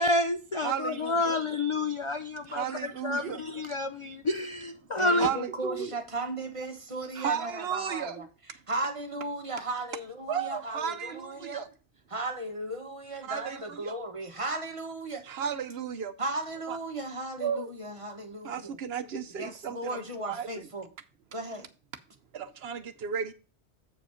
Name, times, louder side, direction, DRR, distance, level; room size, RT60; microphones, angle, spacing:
voice 1, 0.0-5.3, left 2 dB, 45° left, 0.4 m, -29 dB
voice 2, 0.6-1.4 2.5-3.4 5.1-5.9 7.1-8.2 10.3-11.7 13.2-13.9 15.3-16.1 16.7-16.8 17.4-17.7 18.4-20.7 22.3-23.3, right 8 dB, 65° right, 0.9 m, -34 dB
voice 3, 5.0-8.3 8.7-11.6 12.1-15.2 16.2-18.7 19.1-20.9 21.3-21.7, right 2 dB, 30° right, 1.3 m, -36 dB
7.9 x 5.0 x 4.9 m
omnidirectional pair, 1.1 m